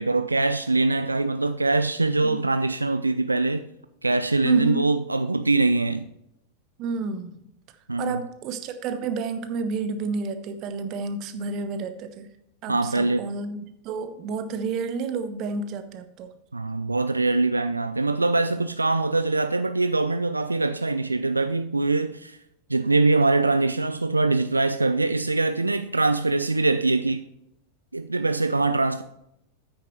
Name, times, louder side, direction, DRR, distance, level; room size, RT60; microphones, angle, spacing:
voice 1, 0.0-3.7 4.0-6.1 7.9-8.2 12.7-13.3 16.5-22.4 22.7-27.2 27.9-29.0, right 3 dB, 80° right, 0.3 m, -23 dB
voice 2, 4.4-4.9 6.8-7.4 8.0-12.3 12.6-13.6 13.8-16.3, right 5 dB, 40° right, 1.0 m, -30 dB
9.9 x 8.8 x 3.1 m
figure-of-eight pair, 90°, 0 cm